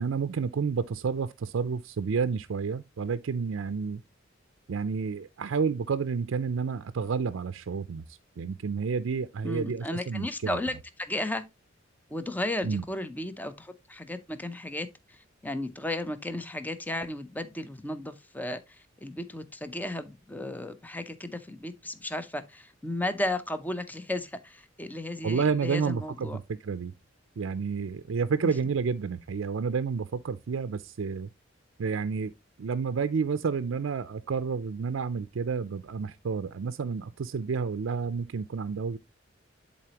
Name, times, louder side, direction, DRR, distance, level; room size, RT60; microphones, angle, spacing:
voice 1, 0.0-4.0 4.7-8.0 8.4-10.6 12.6-12.8 25.2-26.9 27.4-31.3 31.8-32.3 32.6-39.0, right 5 dB, 75° right, 0.4 m, -30 dB
voice 2, 9.4-11.4 12.1-15.2 15.4-18.6 19.0-26.4, left 1 dB, 10° left, 0.6 m, -34 dB
11.0 x 4.1 x 2.9 m
head